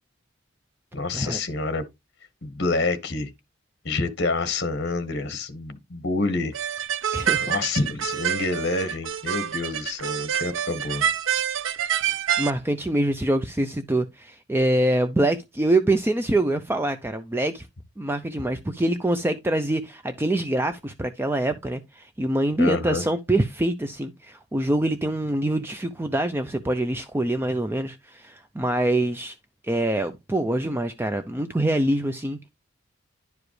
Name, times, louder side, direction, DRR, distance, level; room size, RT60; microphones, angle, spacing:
voice 1, 0.9-1.8 2.4-3.3 3.8-6.5 7.4-11.0 22.6-23.0, left 3 dB, 55° left, 1.2 m, -27 dB
sound 1, 6.5-12.5, right 9 dB, 75° right, 0.5 m, -27 dB
voice 2, 7.1-7.5 12.4-17.7 18.0-29.4 29.6-32.4, right 1 dB, 10° right, 0.4 m, -25 dB
10.5 x 4.9 x 3.1 m
head